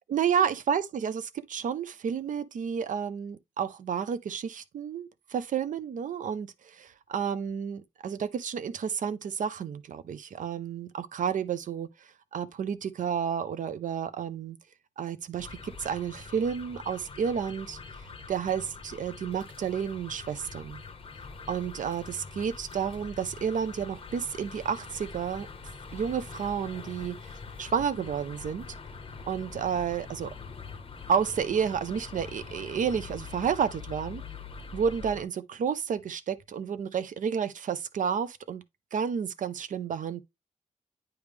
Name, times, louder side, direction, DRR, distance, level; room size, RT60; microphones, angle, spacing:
voice 1, 0.1-11.9 12.3-14.6 15.0-17.8 18.3-20.8 21.5-25.5 25.9-27.3 27.6-28.6 29.3-30.3 31.1-34.2 34.7-38.6 38.9-40.2, right 7 dB, 85° right, 0.6 m, -31 dB
sound 1, 15.4-35.2, left 4 dB, 45° left, 0.9 m, -44 dB
9.3 x 3.3 x 3.4 m
wide cardioid pair, 115°, 13 cm